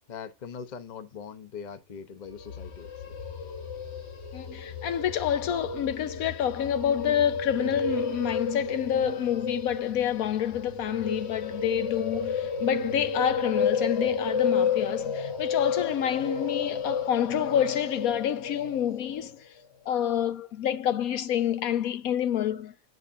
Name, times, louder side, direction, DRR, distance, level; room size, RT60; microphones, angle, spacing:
voice 1, 0.1-3.2, left 6 dB, 35° left, 0.8 m, -41 dB
sound 1, 2.3-19.3, left 5 dB, 50° left, 1.3 m, -32 dB
voice 2, 4.3-19.3 19.9-22.7, left 10 dB, 80° left, 1.1 m, -28 dB
9.4 x 4.8 x 2.6 m
omnidirectional pair, 1.5 m